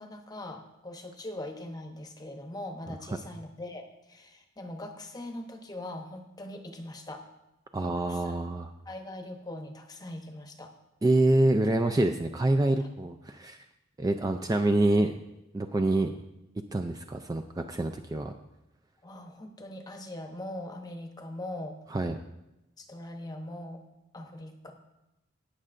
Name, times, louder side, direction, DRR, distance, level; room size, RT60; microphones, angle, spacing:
voice 1, 0.0-7.3 8.1-8.3 8.9-10.7 12.8-13.1 19.0-21.8 22.8-23.8 24.1-24.7, left 1 dB, 20° left, 5 dB, 0.8 m, -41 dB
voice 2, 7.7-8.7 11.0-13.6 14.0-15.2 15.5-16.1 16.7-18.3 21.9-22.1, right 2 dB, 20° right, 6 dB, 0.3 m, -26 dB
18.5 x 6.6 x 2.5 m, 0.92 s
head